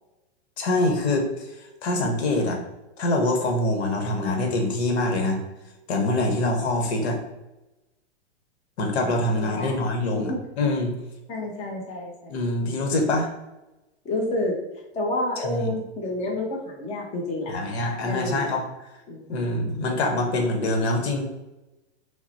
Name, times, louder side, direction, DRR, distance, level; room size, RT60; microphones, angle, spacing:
voice 1, 0.6-1.5 1.8-2.6 3.0-5.4 5.9-7.2 8.8-10.3 10.6-10.9 12.3-13.3 15.4-15.7 17.5-18.6 19.3-21.3, left 2 dB, 70° left, 3 dB, 1.2 m, -24 dB
voice 2, 9.4-9.8 10.1-10.4 11.3-12.4 14.0-14.6 14.9-17.6 18.0-18.5 19.1-19.3, left 1 dB, 20° left, -1 dB, 0.7 m, -29 dB
5.8 x 2.1 x 4.2 m, 1.0 s
hypercardioid pair, 145°, 34 cm